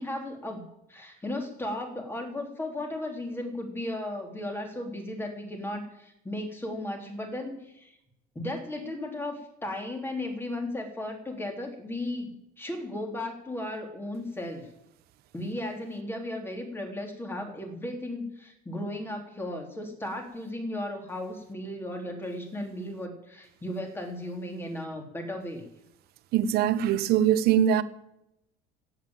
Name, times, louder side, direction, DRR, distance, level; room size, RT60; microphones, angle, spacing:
voice 1, 0.0-8.0 8.3-14.7 15.3-25.6, left 1 dB, 10° left, 3.5 m, -35 dB
voice 2, 26.3-27.8, right 10 dB, 65° right, 1.1 m, -22 dB
16.5 x 8.5 x 9.0 m
cardioid pair, 125°, 18 cm